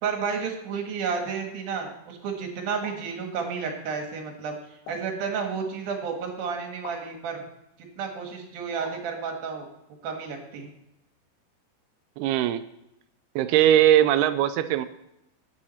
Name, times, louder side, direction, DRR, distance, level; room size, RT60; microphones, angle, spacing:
voice 1, 0.0-4.6 4.9-7.5 8.0-9.7 10.0-10.7, right 5 dB, 65° right, 3 dB, 3.2 m, -31 dB
sound 1, 2.8-3.1 4.9-5.2 6.8-7.1 8.8-9.1, left 4 dB, 75° left, 3.8 m, -43 dB
voice 2, 12.2-12.6 13.4-14.9, right 11 dB, 85° right, 11 dB, 2.3 m, -20 dB
11.0 x 9.7 x 4.3 m, 0.85 s
omnidirectional pair, 5.0 m